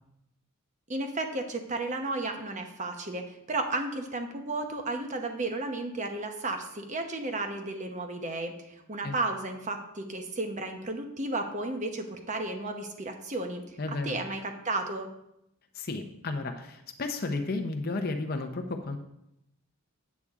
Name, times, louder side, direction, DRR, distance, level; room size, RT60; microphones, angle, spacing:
voice 1, 0.9-13.6 14.0-15.1, right 2 dB, 35° right, 5 dB, 0.9 m, -33 dB
voice 2, 13.8-14.2 15.7-19.0, left 3 dB, 45° left, 5 dB, 0.6 m, -33 dB
8.4 x 8.2 x 3.6 m, 0.82 s
head